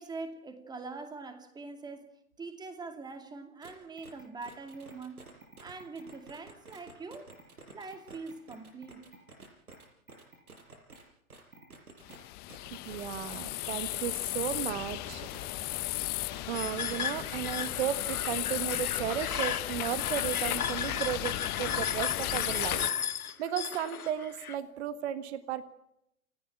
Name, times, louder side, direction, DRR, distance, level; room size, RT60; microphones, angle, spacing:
voice 1, 0.0-2.1 2.4-5.3 5.6-7.3 7.7-9.1, right 3 dB, 10° right, 2.4 m, -43 dB
sound 1, 3.6-3.7 4.0-11.0 11.3-12.2 12.5-23.4, right 3 dB, 85° right, 6.1 m, -51 dB
sound 2, 12.0-22.9, left 19 dB, 20° left, 0.8 m, -35 dB
voice 2, 12.7-15.3 16.5-23.1 23.4-25.6, right 11 dB, 50° right, 1.7 m, -35 dB
sound 3, 16.5-24.6, left 8 dB, 80° left, 1.5 m, -35 dB
28.5 x 13.5 x 9.0 m
hypercardioid pair, 125°, 43 cm